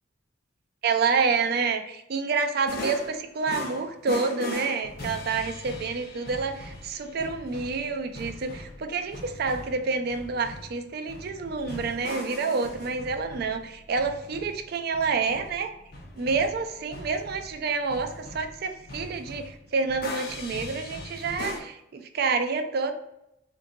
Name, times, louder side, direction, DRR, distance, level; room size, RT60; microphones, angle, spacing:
voice 1, 0.8-15.7 16.2-22.9, right 4 dB, 55° right, 6 dB, 0.4 m, -28 dB
sound 1, 2.7-21.6, left 2 dB, 55° left, 0.6 m, -40 dB
3.8 x 2.5 x 2.5 m, 0.81 s
head